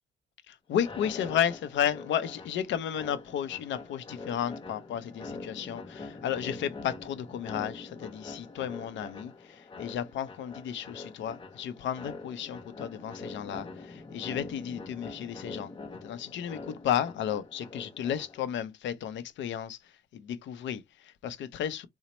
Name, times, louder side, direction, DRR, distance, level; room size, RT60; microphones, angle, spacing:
voice 1, 0.7-15.7 16.0-21.9, left 9 dB, 70° left, 0.5 m, -33 dB
sound 1, 0.8-18.6, left 3 dB, 25° left, 0.7 m, -44 dB
4.1 x 2.1 x 2.8 m
cardioid pair, 90°, 20 cm